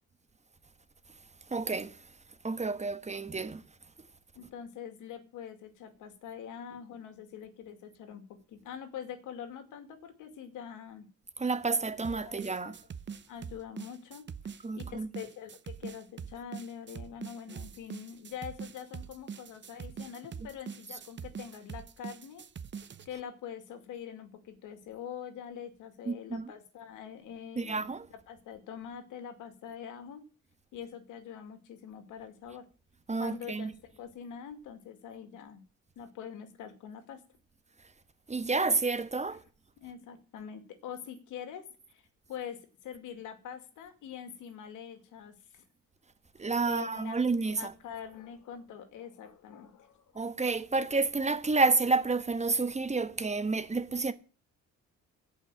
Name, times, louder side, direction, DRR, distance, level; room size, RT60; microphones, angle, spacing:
voice 1, 1.5-2.0 2.4-3.6 11.4-12.7 14.6-15.1 26.1-26.5 27.6-28.1 33.1-33.7 38.3-39.4 46.4-47.7 50.1-54.1, right 3 dB, 25° right, 1.2 m, -30 dB
voice 2, 4.4-8.2 8.5-11.1 12.2-12.7 13.3-14.2 14.8-22.4 23.1-30.2 30.7-32.6 33.2-35.6 36.0-37.2 39.3-39.4 39.8-42.0 42.3-45.6 46.7-50.2, left 8 dB, 90° left, 2.3 m, -44 dB
sound 1, 12.0-23.1, right 7 dB, 40° right, 0.8 m, -43 dB
16.5 x 5.7 x 7.6 m
cardioid pair, 90°, 30 cm